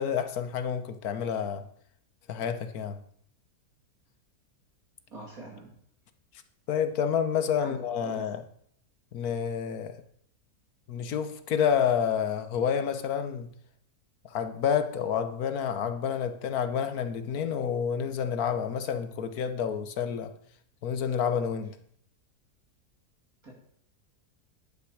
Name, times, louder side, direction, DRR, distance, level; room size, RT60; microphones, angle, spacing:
voice 1, 0.0-1.7 2.3-3.0 6.7-8.4 9.1-10.0 10.9-13.5 14.3-20.3 20.8-21.8, left 7 dB, 70° left, 9 dB, 1.4 m, -29 dB
voice 2, 5.1-5.7 7.6-8.3 23.4-23.5, right 2 dB, 60° right, -2 dB, 3.2 m, -44 dB
11.0 x 9.3 x 4.9 m, 0.65 s
omnidirectional pair, 1.7 m